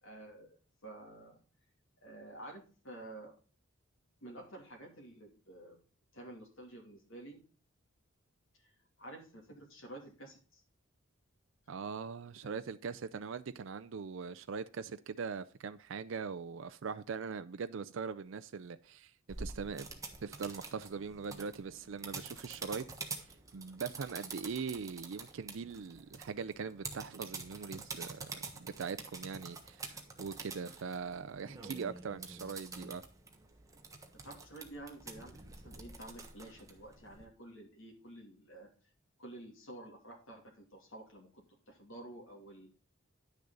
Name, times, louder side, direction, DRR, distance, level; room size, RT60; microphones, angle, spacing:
voice 1, 0.0-1.4 2.0-3.3 4.2-5.8 6.1-7.4 8.5-8.7 9.0-10.6 12.4-12.6 13.1-13.2 34.2-38.7 39.2-42.7, right 1 dB, 75° left, 2.7 m, -51 dB
voice 2, 11.7-19.1 19.4-19.9 20.2-22.8 23.5-28.3 28.8-33.0, right 5 dB, 65° right, 0.4 m, -41 dB
sound 1, 19.3-37.3, right 3 dB, 15° right, 1.3 m, -47 dB
10.0 x 6.6 x 3.9 m
head